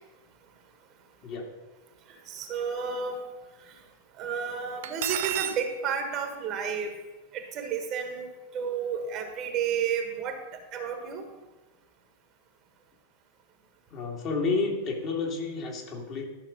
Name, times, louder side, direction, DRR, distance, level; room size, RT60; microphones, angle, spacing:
voice 1, 1.2-1.5 13.9-16.3, left 4 dB, 40° left, -1 dB, 2.3 m, -30 dB
voice 2, 2.3-3.2 4.2-6.9 7.3-10.4 10.7-11.3, right 6 dB, 35° right, 5 dB, 1.5 m, -31 dB
Cutlery silverware, 4.8-5.6, right 12 dB, 55° right, 0.5 m, -30 dB
12.0 x 6.0 x 5.3 m, 1.1 s
figure-of-eight pair, 90°, 0 cm